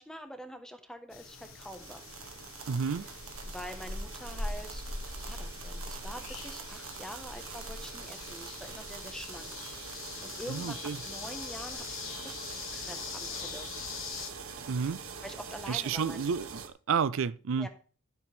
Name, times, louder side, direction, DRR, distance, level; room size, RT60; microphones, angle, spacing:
voice 1, 0.0-2.1 3.4-4.9 5.1-9.6 9.8-10.8 11.0-13.7 15.2-16.3 17.6-17.7, equal, 5° left, 1.3 m, -45 dB
sound 1, 1.1-14.3, left 4 dB, 65° left, 1.5 m, -42 dB
sound 2, 1.3-16.7, right 5 dB, 85° right, 1.6 m, -44 dB
voice 2, 2.7-3.0 10.5-11.0 14.7-15.0 15.7-17.7, right 6 dB, 65° right, 0.4 m, -31 dB
13.0 x 7.6 x 3.6 m
head